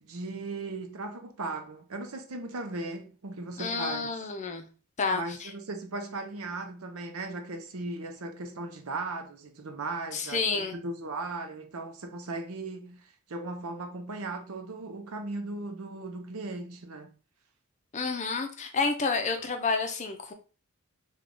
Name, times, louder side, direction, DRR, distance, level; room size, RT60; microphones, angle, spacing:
voice 1, 0.0-4.0 5.1-17.1, right 2 dB, 70° right, 0.7 m, -37 dB
voice 2, 3.6-4.7 5.0-5.5 10.1-10.7 17.9-20.3, left 4 dB, 35° left, 0.5 m, -30 dB
3.4 x 2.3 x 3.7 m
head